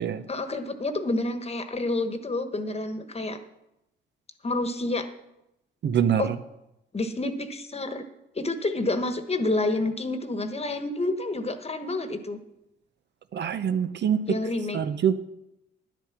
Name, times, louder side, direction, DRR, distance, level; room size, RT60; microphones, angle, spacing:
voice 1, 0.3-3.4 4.4-5.1 6.2-6.3 6.9-8.0 8.3-12.4 14.3-14.8, left 2 dB, 30° left, 9 dB, 1.3 m, -29 dB
voice 2, 5.8-6.3 13.3-14.2 14.7-15.2, right 8 dB, 55° right, 11 dB, 0.8 m, -24 dB
10.5 x 9.1 x 6.0 m, 0.89 s
cardioid pair, 70°, 21 cm